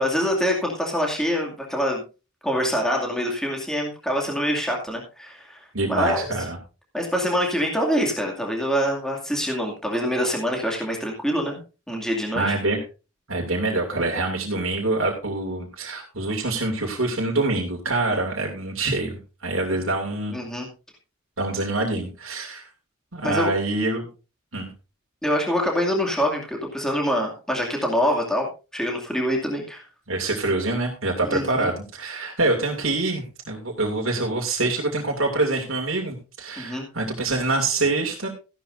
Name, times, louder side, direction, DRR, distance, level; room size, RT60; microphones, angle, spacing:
voice 1, 0.0-2.0 2.4-6.3 6.9-11.6 11.9-12.6 20.3-20.7 23.2-23.5 25.2-29.8 31.2-31.7 36.6-36.8, equal, 5° left, 0 dB, 2.4 m, -25 dB
voice 2, 5.7-6.6 12.3-12.8 13.3-20.3 21.4-22.7 23.1-24.1 24.5-24.7 30.1-38.3, right 2 dB, 75° right, 1 dB, 2.6 m, -25 dB
15.0 x 11.5 x 2.7 m, 0.31 s
head